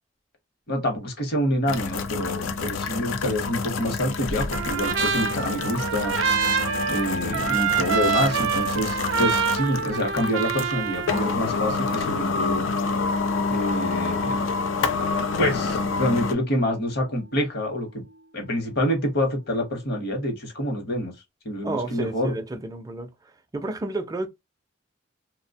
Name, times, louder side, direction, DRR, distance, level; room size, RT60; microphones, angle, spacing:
voice 1, 0.7-6.1 6.9-12.7 13.5-14.4 15.4-18.0 18.3-21.1 21.4-22.3, left 1 dB, 55° left, 0.9 m, -27 dB
sound 1, 1.7-16.3, left 4 dB, 90° left, 0.4 m, -28 dB
Trumpet, 4.5-11.2, right 7 dB, 75° right, 0.5 m, -26 dB
sound 2, 6.1-20.0, equal, 40° left, 0.5 m, -39 dB
voice 2, 21.6-23.1 23.5-24.3, right 2 dB, 20° right, 0.4 m, -31 dB
2.6 x 2.1 x 2.6 m
head